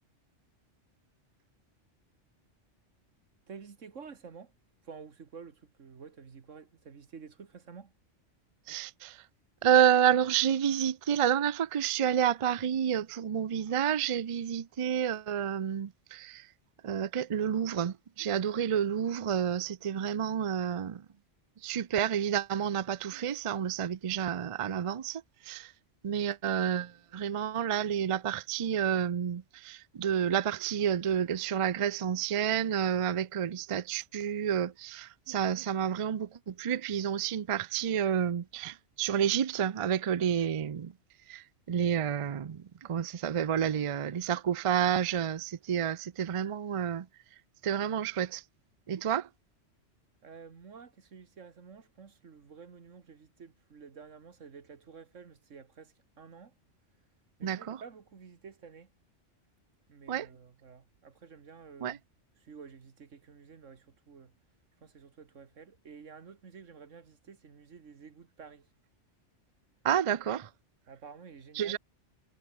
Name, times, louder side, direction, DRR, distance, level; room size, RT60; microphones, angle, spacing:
voice 1, 3.5-4.5 4.8-7.9 50.2-56.6 57.4-58.9 59.9-62.0 62.4-64.3 64.8-68.7 70.9-71.8, right 6 dB, 90° right, 2.0 m, -50 dB
voice 2, 8.7-9.2 9.6-16.5 16.8-21.1 21.6-25.7 26.0-40.9 41.3-47.1 47.6-48.4 48.9-49.3 57.4-57.8 60.1-60.3 61.8-62.0 69.8-70.5 71.6-71.8, right 9 dB, 45° right, 0.4 m, -29 dB
omnidirectional pair, 1.3 m